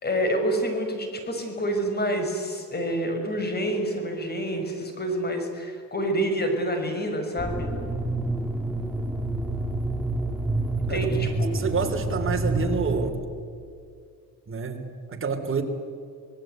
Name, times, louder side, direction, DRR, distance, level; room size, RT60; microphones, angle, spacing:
voice 1, 0.0-7.7 10.8-11.5, right 1 dB, 25° left, 5 dB, 5.8 m, -27 dB
sound 1, 7.4-13.1, right 2 dB, 5° right, 3.1 m, -28 dB
voice 2, 11.5-13.2 14.5-15.6, right 5 dB, 35° right, 5 dB, 3.6 m, -28 dB
26.5 x 20.0 x 9.3 m, 2.3 s
cardioid pair, 105°, 35 cm